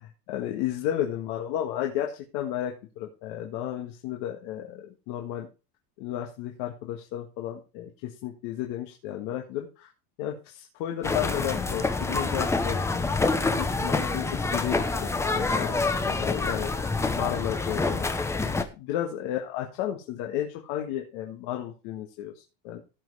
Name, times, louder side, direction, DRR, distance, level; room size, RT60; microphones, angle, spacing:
voice 1, 0.0-5.5 6.0-9.9 10.2-12.9 13.4-18.1 18.8-22.8, left 11 dB, 65° left, 2 dB, 1.9 m, -33 dB
sound 1, 11.0-18.6, left 3 dB, 10° left, 0.8 m, -27 dB
16.0 x 5.6 x 4.8 m, 0.31 s
cardioid pair, 160°, 34 cm